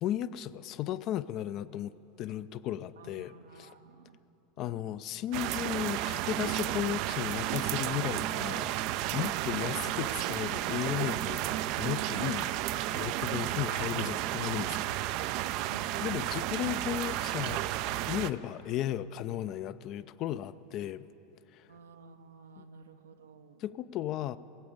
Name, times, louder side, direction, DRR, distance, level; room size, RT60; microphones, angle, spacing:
voice 1, 0.0-3.7 4.6-11.4 11.8-12.5 12.9-15.0 16.0-17.6 18.1-21.1 21.5-21.6 22.6-22.7 23.6-24.4, left 12 dB, 45° left, 15 dB, 0.4 m, -35 dB
voice 2, 3.0-4.2 4.6-5.0 12.1-12.4 15.4-16.5 21.7-23.6, right 5 dB, 75° right, 8 dB, 0.7 m, -51 dB
sound 1, 5.3-18.3, right 14 dB, 50° right, 0.4 m, -32 dB
16.5 x 7.8 x 8.7 m, 2.9 s
figure-of-eight pair, 85°, 0 cm